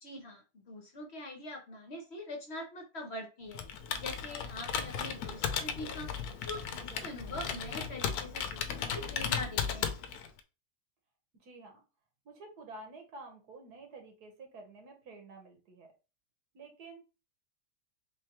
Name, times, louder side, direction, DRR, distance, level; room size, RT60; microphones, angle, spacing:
voice 1, 0.0-3.6 4.0-6.1 6.5-9.9, left 1 dB, 50° left, 2 dB, 1.0 m, -43 dB
Computer keyboard, 3.5-10.4, left 7 dB, 80° left, 1.1 m, -36 dB
voice 2, 6.8-7.4 11.3-11.8 12.2-15.9 16.5-17.0, right 3 dB, 75° right, 3 dB, 1.6 m, -50 dB
3.8 x 3.4 x 2.9 m, 0.30 s
omnidirectional pair, 1.7 m